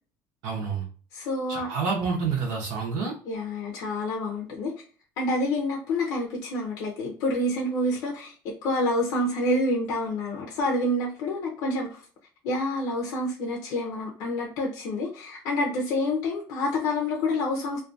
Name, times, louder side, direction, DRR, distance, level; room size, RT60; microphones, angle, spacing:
voice 1, 0.4-0.8 1.5-3.1, right 5 dB, 85° right, 0.7 m, -28 dB
voice 2, 1.1-1.7 3.3-4.7 5.2-12.0 12.4-17.8, left 1 dB, 60° left, 0.5 m, -28 dB
2.3 x 2.2 x 2.5 m
cardioid pair, 170°, 7 cm